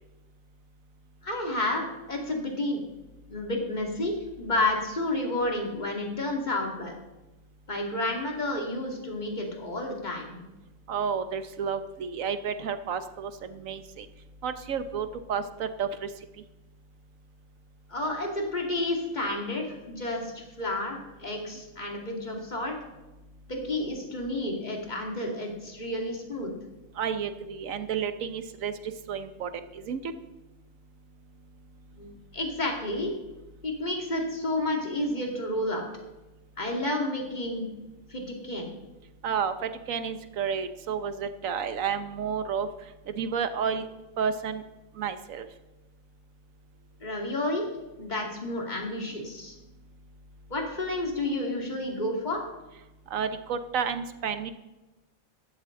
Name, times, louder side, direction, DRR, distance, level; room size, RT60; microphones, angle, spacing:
voice 1, 1.2-2.8 3.3-6.9 7.7-10.4 17.9-22.7 23.5-26.5 32.0-33.1 33.6-35.9 36.6-37.6 38.1-38.7 47.0-47.6 48.0-49.5 50.5-52.4, left 1 dB, 30° left, 1 dB, 2.5 m, -30 dB
voice 2, 10.9-14.0 14.4-16.1 27.0-28.7 29.1-29.5 29.9-30.0 39.2-42.7 43.2-43.8 44.2-44.6 45.0-45.5 53.1-54.5, right 7 dB, 75° right, 10 dB, 1.3 m, -31 dB
15.5 x 12.5 x 3.8 m, 1.1 s
omnidirectional pair, 1.4 m